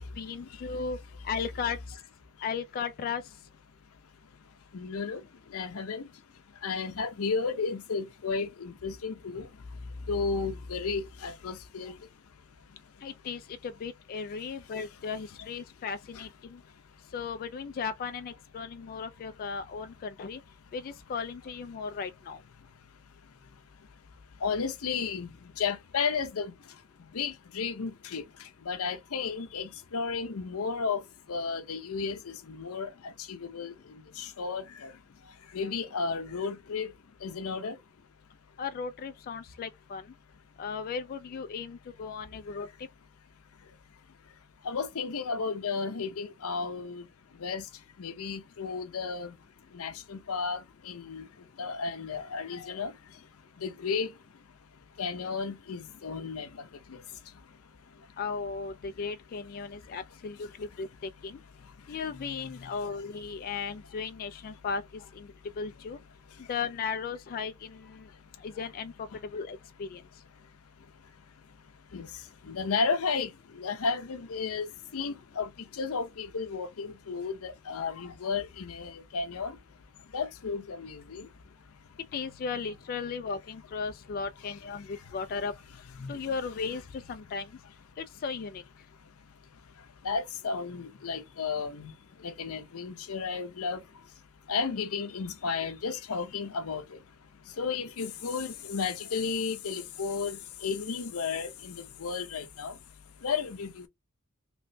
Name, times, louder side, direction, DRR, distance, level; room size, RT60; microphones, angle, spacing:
voice 1, 0.2-1.0 1.2-2.0 2.4-3.2 13.0-16.6 17.1-20.4 20.7-22.4 38.6-40.0 40.6-42.9 58.2-61.4 61.9-65.3 65.6-66.0 66.5-68.1 68.4-70.0 82.1-85.5 86.1-87.5 88.0-88.6, left 5 dB, 45° left, 0.3 m, -36 dB
voice 2, 4.7-5.2 5.5-6.1 6.6-9.5 10.1-11.9 24.4-25.3 25.6-26.5 27.1-28.2 28.7-31.0 31.3-33.7 34.2-34.9 35.5-36.9 37.2-37.8 44.6-47.0 47.4-47.7 48.0-49.3 49.7-51.2 51.6-52.9 53.6-54.1 55.0-56.5 56.9-57.0 71.9-72.1 72.4-74.7 74.9-79.6 80.1-81.3 86.0-86.1 90.0-91.9 92.2-93.8 94.5-97.0 97.6-102.7 103.2-103.9, left 5 dB, 85° left, 0.6 m, -33 dB
3.0 x 3.0 x 2.6 m
head